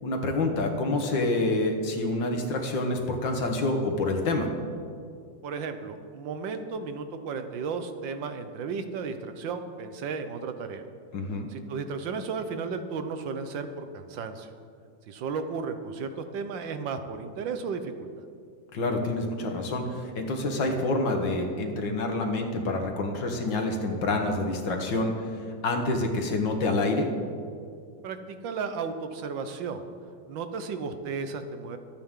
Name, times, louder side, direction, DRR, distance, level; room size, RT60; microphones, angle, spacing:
voice 1, 0.0-4.5 11.1-11.5 18.7-25.3 25.6-27.1, left 2 dB, 75° left, 3 dB, 2.2 m, -27 dB
voice 2, 5.4-10.8 11.5-14.5 15.1-18.1 28.0-29.8 30.3-31.8, right 5 dB, 80° right, 8 dB, 1.6 m, -34 dB
24.0 x 9.0 x 3.8 m, 2.3 s
omnidirectional pair, 2.0 m